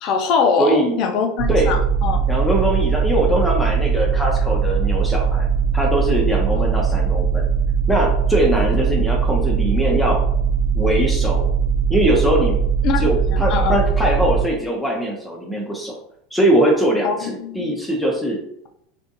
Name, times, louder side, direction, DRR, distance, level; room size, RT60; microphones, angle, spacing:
voice 1, 0.0-2.2 12.8-13.7 17.0-17.8, left 5 dB, 50° left, 4 dB, 0.5 m, -22 dB
voice 2, 0.6-1.0 1.5-1.7 2.3-5.5 5.7-7.5 7.9-10.2 10.7-11.5 11.9-12.6 13.0-16.0 16.3-18.4, right 1 dB, 5° left, -2 dB, 0.7 m, -21 dB
sound 1, 1.4-14.4, right 6 dB, 45° right, 0.4 m, -20 dB
3.4 x 2.4 x 2.7 m, 0.74 s
hypercardioid pair, 80°, 0 cm